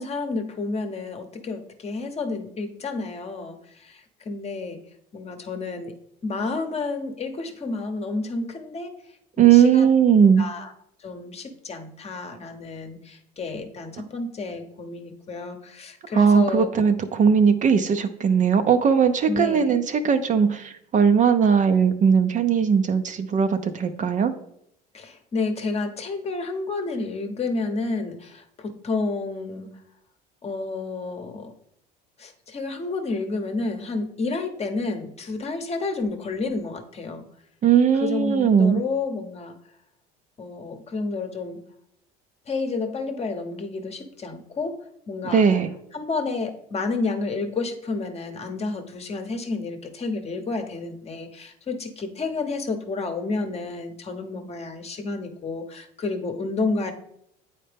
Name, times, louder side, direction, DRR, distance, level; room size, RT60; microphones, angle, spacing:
voice 1, 0.0-4.8 5.1-5.9 6.2-8.9 9.4-9.9 10.2-10.7 11.0-16.7 19.3-19.7 24.9-29.7 30.4-31.5 32.2-37.2 38.0-39.6 40.4-41.6 42.5-44.8 45.1-45.4 45.9-56.9, left 3 dB, 30° left, 6 dB, 0.9 m, -30 dB
voice 2, 9.4-10.5 16.1-24.3 37.6-38.8 45.3-45.7, right 7 dB, 40° right, 9 dB, 0.6 m, -19 dB
8.4 x 4.3 x 3.4 m, 0.74 s
supercardioid pair, 85°, 20 cm